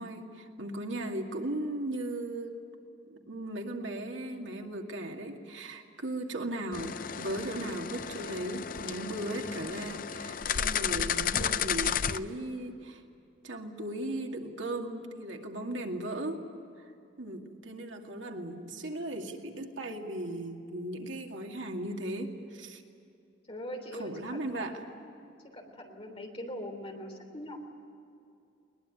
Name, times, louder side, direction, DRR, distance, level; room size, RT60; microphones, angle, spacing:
voice 1, 0.0-2.6 3.1-13.0 13.4-16.4 16.8-16.9 17.2-22.8 24.0-24.8, right 1 dB, 80° right, 3 dB, 2.3 m, -37 dB
sound 1, 6.7-12.2, left 8 dB, 45° left, 0.5 m, -33 dB
voice 2, 23.5-25.1 25.5-27.6, left 1 dB, 30° left, 3 dB, 3.4 m, -42 dB
21.5 x 21.0 x 10.0 m, 2.5 s
head